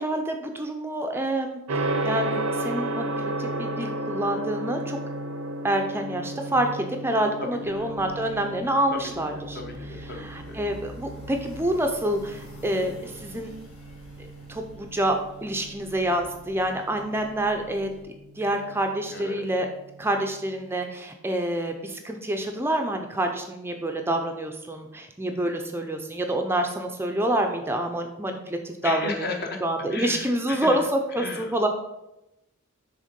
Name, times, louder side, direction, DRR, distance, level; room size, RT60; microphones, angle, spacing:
voice 1, 0.0-5.0 5.6-9.6 10.2-13.5 14.2-17.9 18.4-19.7 20.0-29.3 29.6-31.7, right 1 dB, 10° right, 4 dB, 0.5 m, -27 dB
Gong, 1.7-20.6, right 1 dB, 75° right, 0.7 m, -34 dB
voice 2, 7.4-7.9 8.9-10.6 19.1-19.5 28.8-29.6 29.9-30.8 31.1-31.6, left 3 dB, 50° left, 2 dB, 1.1 m, -35 dB
Semi without trailer, 7.6-18.0, equal, 70° left, 2.0 m, -48 dB
6.4 x 3.6 x 5.1 m, 0.91 s
head